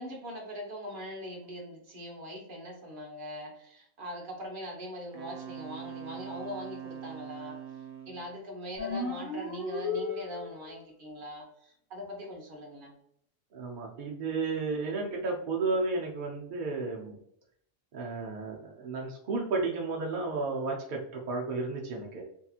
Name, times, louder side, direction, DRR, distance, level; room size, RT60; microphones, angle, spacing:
voice 1, 0.0-7.6 8.1-12.9, equal, 45° right, -1 dB, 0.8 m, -41 dB
Wind instrument woodwind instrument, 5.1-8.3, right 9 dB, 80° right, 1.0 m, -43 dB
sound 1, 8.8-10.7, left 3 dB, 40° left, 0.8 m, -34 dB
voice 2, 13.5-17.2 17.9-22.2, right 3 dB, 60° right, -1 dB, 0.5 m, -33 dB
2.8 x 2.7 x 2.3 m, 0.68 s
omnidirectional pair, 1.4 m